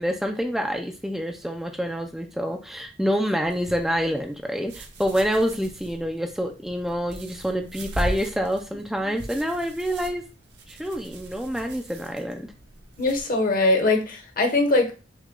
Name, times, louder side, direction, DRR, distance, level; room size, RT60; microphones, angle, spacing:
voice 1, 0.0-10.2 10.7-12.5, equal, ahead, 4 dB, 0.4 m, -27 dB
sound 1, 3.4-13.2, right 1 dB, 75° right, 1.0 m, -39 dB
voice 2, 13.0-14.9, left 2 dB, 50° left, 3 dB, 1.0 m, -21 dB
6.1 x 2.3 x 3.7 m, 0.33 s
head